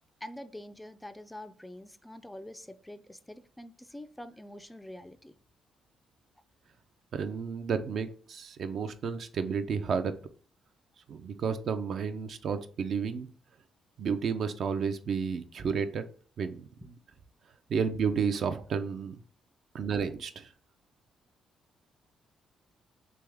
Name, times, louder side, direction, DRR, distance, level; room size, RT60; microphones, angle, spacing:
voice 1, 0.2-5.3, left 1 dB, 10° left, 0.3 m, -45 dB
voice 2, 7.1-10.1 11.1-13.3 14.0-16.1 16.4-16.7 17.7-19.2 19.7-20.5, right 6 dB, 60° right, 0.4 m, -31 dB
3.4 x 3.0 x 3.4 m
cardioid pair, 90°, 0 cm